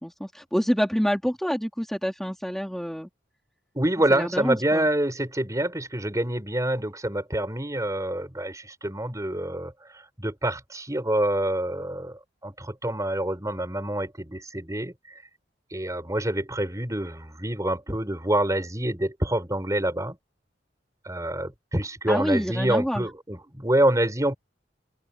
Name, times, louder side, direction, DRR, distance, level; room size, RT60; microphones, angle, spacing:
voice 1, 0.0-3.1 4.1-4.8 22.1-23.1, equal, ahead, 3.2 m, -27 dB
voice 2, 3.8-14.9 15.7-20.2 21.1-24.4, right 1 dB, 20° right, 5.1 m, -26 dB
open air
head